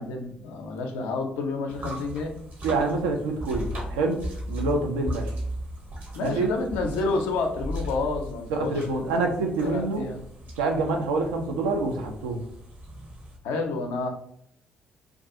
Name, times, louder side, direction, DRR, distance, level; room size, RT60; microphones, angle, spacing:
voice 1, 0.0-2.3 6.1-9.1 9.6-10.2 13.4-14.1, left 3 dB, 65° left, 3 dB, 0.4 m, -29 dB
sound 1, 1.7-13.4, equal, 45° right, 0.8 m, -37 dB
voice 2, 2.6-4.2 4.5-5.3 6.2-6.5 8.5-10.1 10.6-12.4, right 3 dB, 75° right, 3 dB, 0.4 m, -26 dB
2.4 x 2.3 x 2.6 m, 0.69 s
figure-of-eight pair, 45°, 4 cm